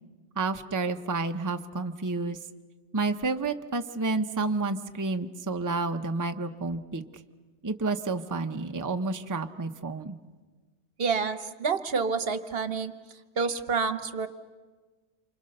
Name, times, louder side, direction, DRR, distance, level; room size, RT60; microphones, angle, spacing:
voice 1, 0.4-2.4 2.9-7.0 7.6-10.2, right 3 dB, 20° right, 7 dB, 0.8 m, -30 dB
voice 2, 11.0-12.9 13.4-14.3, right 5 dB, 60° right, 11 dB, 1.2 m, -28 dB
28.5 x 25.5 x 6.5 m, 1.4 s
omnidirectional pair, 1.1 m